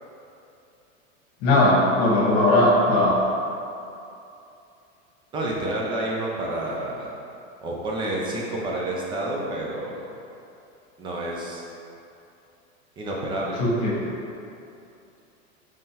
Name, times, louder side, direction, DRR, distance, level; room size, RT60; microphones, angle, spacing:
voice 1, 1.4-3.2 13.6-13.9, left 1 dB, 45° left, -4 dB, 1.2 m, -18 dB
voice 2, 5.3-7.1 7.6-10.1 11.0-11.6 13.0-13.6, right 1 dB, 15° right, -3 dB, 0.3 m, -29 dB
5.4 x 3.3 x 2.8 m, 2.7 s
supercardioid pair, 135°, 38 cm